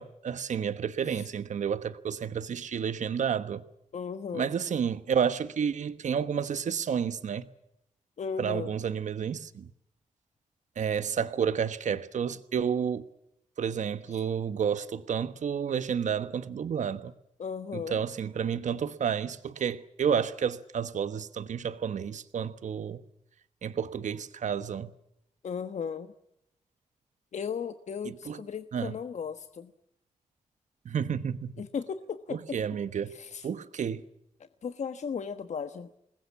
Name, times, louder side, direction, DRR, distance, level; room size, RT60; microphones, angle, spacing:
voice 1, 0.0-3.6 4.3-7.5 8.4-9.7 10.8-13.1 13.6-17.1 17.7-23.0 23.6-24.9 28.1-28.4 28.7-28.9 30.8-31.5 32.3-33.1 33.4-34.0, right 7 dB, 75° right, 1.3 m, -30 dB
voice 2, 3.9-4.5 8.2-8.8 14.1-14.2 17.4-18.0 25.4-26.1 27.3-29.7 31.6-32.6 33.1-33.5 34.6-35.9, left 6 dB, 65° left, 1.2 m, -36 dB
27.5 x 21.0 x 7.4 m
wide cardioid pair, 105°, 13 cm